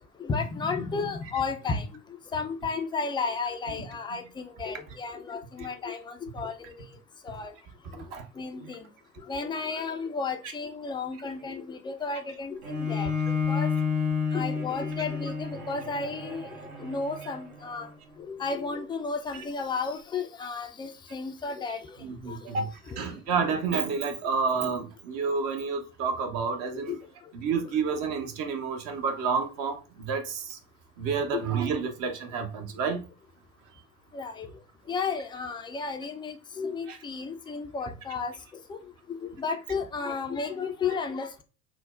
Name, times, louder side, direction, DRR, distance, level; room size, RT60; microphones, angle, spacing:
voice 1, 0.2-1.8 2.3-4.2 4.6-6.7 7.3-7.5 8.4-8.8 9.3-13.1 13.5-13.7 14.3-16.5 16.8-17.9 18.3-21.8 22.3-22.4 22.9-23.0 26.9-27.0 31.3-31.4 34.1-34.5 34.9-38.3 38.7-38.8 39.2-41.4, left 4 dB, 10° left, 0.3 m, -33 dB
Bowed string instrument, 12.6-17.8, left 5 dB, 65° right, 1.1 m, -30 dB
voice 2, 22.0-26.9 27.3-30.6 31.0-33.1 36.9-37.0, right 5 dB, 45° right, 0.9 m, -29 dB
6.0 x 2.1 x 2.3 m
figure-of-eight pair, 65°, 44 cm